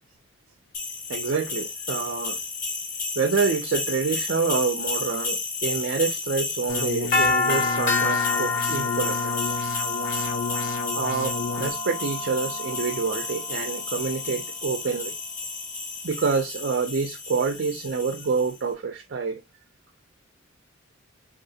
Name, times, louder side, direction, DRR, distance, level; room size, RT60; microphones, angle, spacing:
sound 1, 0.7-18.5, left 3 dB, 40° left, 1.1 m, -29 dB
voice 1, 1.1-2.4 3.2-9.7 10.9-15.1 16.0-19.4, right 5 dB, 60° right, 0.5 m, -27 dB
sound 2, 6.7-11.7, left 5 dB, 85° left, 0.8 m, -32 dB
3.6 x 2.4 x 2.7 m
head